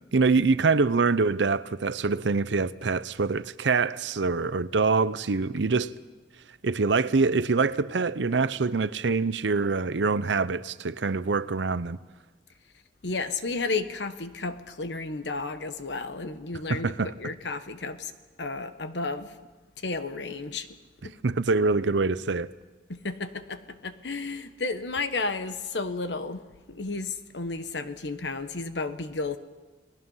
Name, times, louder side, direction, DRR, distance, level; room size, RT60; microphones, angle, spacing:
voice 1, 0.1-5.9 6.6-12.0 16.7-17.3 21.2-22.5, right 4 dB, 85° right, 0.7 m, -25 dB
voice 2, 13.0-16.9 17.2-18.1 18.4-19.3 19.8-20.7 21.0-21.1 22.9-26.4 26.7-29.4, left 3 dB, 75° left, 1.3 m, -32 dB
30.0 x 19.5 x 5.7 m
head